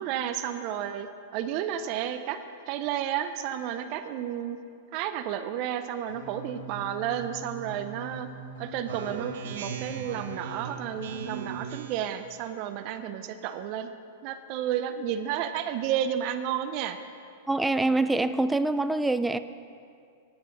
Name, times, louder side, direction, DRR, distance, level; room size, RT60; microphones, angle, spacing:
voice 1, 0.0-2.4 2.7-4.6 4.9-8.3 8.6-13.9 14.2-17.0, right 10 dB, 45° right, 10 dB, 0.6 m, -32 dB
sound 1, 6.1-11.6, equal, 75° left, 1.8 m, -43 dB
Speech synthesizer, 8.9-12.2, right 9 dB, 70° right, 0.8 m, -39 dB
voice 2, 17.5-19.4, right 2 dB, 5° right, 12 dB, 0.3 m, -25 dB
9.8 x 6.7 x 8.2 m, 2.3 s
hypercardioid pair, 130°, 0 cm